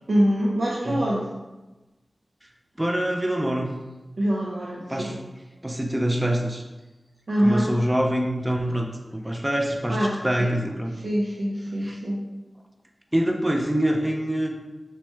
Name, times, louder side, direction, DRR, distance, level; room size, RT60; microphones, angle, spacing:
voice 1, 0.1-1.3 4.2-5.1 7.3-7.7 9.9-10.5 10.9-12.2, equal, 75° right, -5 dB, 0.5 m, -24 dB
voice 2, 2.8-3.8 4.9-5.2 5.6-6.6 7.4-10.0 10.2-10.9 11.8-12.0 13.1-14.6, right 1 dB, 15° right, 2 dB, 0.4 m, -25 dB
3.3 x 3.1 x 3.1 m, 1.1 s
wide cardioid pair, 90°, 0 cm